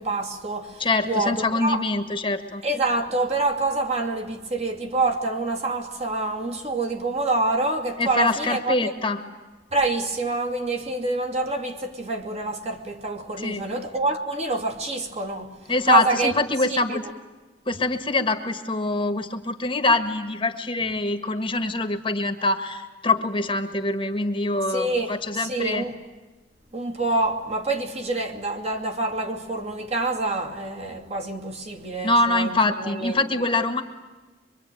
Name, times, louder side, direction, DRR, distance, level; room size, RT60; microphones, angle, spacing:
voice 1, 0.0-1.8 2.6-8.9 9.7-15.5 15.9-16.3 16.7-17.0 24.7-25.9 26.7-33.2 33.5-33.6, right 2 dB, 35° right, 2.5 m, -26 dB
voice 2, 0.8-2.6 8.0-9.2 13.4-13.7 15.7-17.0 17.7-25.8 32.0-33.8, left 2 dB, 30° left, 1.6 m, -24 dB
24.5 x 24.0 x 9.3 m
head